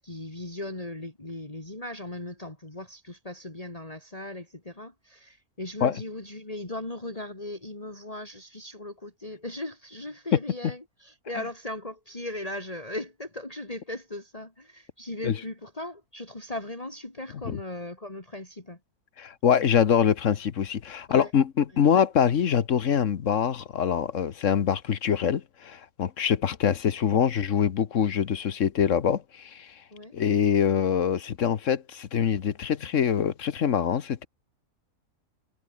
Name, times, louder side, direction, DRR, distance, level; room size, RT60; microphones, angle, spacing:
voice 1, 0.0-18.8 21.1-21.3 29.9-30.2, left 1 dB, 25° left, 3.4 m, -38 dB
voice 2, 19.2-29.7 30.1-34.3, left 8 dB, 60° left, 1.3 m, -24 dB
omnidirectional pair, 1.6 m